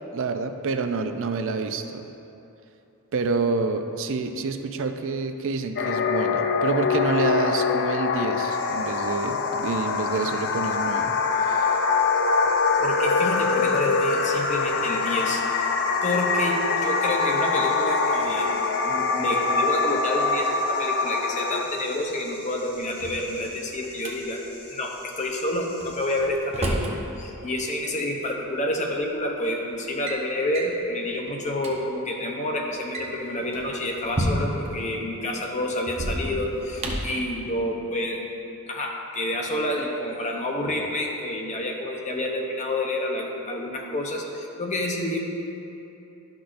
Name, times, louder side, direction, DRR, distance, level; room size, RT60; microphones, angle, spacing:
voice 1, 0.1-2.1 3.1-11.1 11.4-11.7, right 4 dB, 60° right, 7 dB, 0.4 m, -28 dB
sound 1, 5.8-21.6, left 4 dB, 50° left, 0.4 m, -24 dB
sound 2, 8.5-26.2, left 3 dB, 80° left, 1.7 m, -47 dB
voice 2, 12.4-18.5 18.8-24.4 24.7-38.3 38.7-45.2, left 1 dB, 35° left, 0 dB, 0.8 m, -29 dB
Drawer open or close, 22.8-24.1 25.8-27.0 28.3-28.4 29.2-29.4 29.8-30.2 30.5-30.8 31.3-31.4 31.6-31.7 32.7-34.7 35.9-37.2, right 1 dB, 30° right, 0.8 m, -30 dB
11.5 x 6.0 x 2.5 m, 2.9 s
head